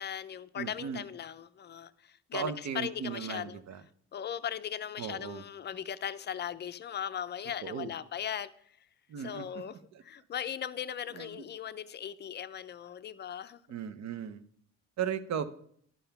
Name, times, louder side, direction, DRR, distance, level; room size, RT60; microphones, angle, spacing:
voice 1, 0.0-3.6 4.1-8.5 9.2-13.6, left 9 dB, 35° left, 0.4 m, -38 dB
voice 2, 0.6-1.0 2.3-3.8 5.0-5.4 7.6-7.9 9.1-10.0 11.1-11.4 13.7-14.4 15.0-15.4, right 7 dB, 65° right, 0.7 m, -37 dB
11.0 x 5.4 x 5.8 m
cardioid pair, 165°, 30 cm